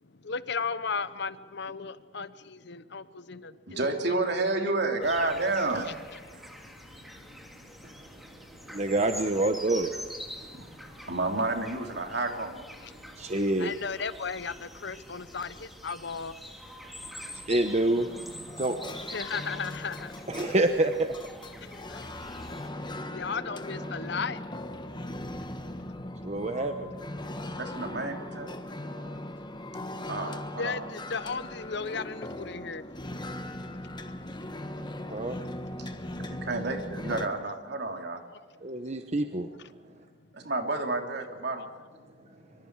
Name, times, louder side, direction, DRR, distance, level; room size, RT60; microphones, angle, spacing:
voice 1, 0.0-4.3 5.0-5.3 5.9-6.0 6.2-8.8 10.4-11.1 12.8-13.3 13.6-16.4 19.1-20.1 21.6-22.0 22.3-22.5 23.1-24.4 29.7-32.8 36.4-36.5, left 5 dB, 65° left, 14 dB, 1.0 m, -37 dB
voice 2, 3.7-5.9 6.3-6.4 10.5-10.7 11.1-12.6 27.6-28.5 28.8-29.1 30.1-30.9 35.8-35.9 36.3-38.2 40.3-41.7, right 2 dB, 65° right, 3 dB, 3.2 m, -30 dB
sound 1, 5.0-22.7, equal, ahead, 2.8 m, -45 dB
voice 3, 8.7-10.0 13.2-13.7 17.5-18.1 18.6-18.8 20.3-21.1 26.2-26.9 35.1-35.4 38.6-39.5, right 2 dB, 35° right, 6 dB, 1.0 m, -27 dB
sound 2, 17.9-37.3, left 1 dB, 25° left, 1.4 m, -39 dB
25.0 x 24.5 x 4.8 m, 1.5 s
head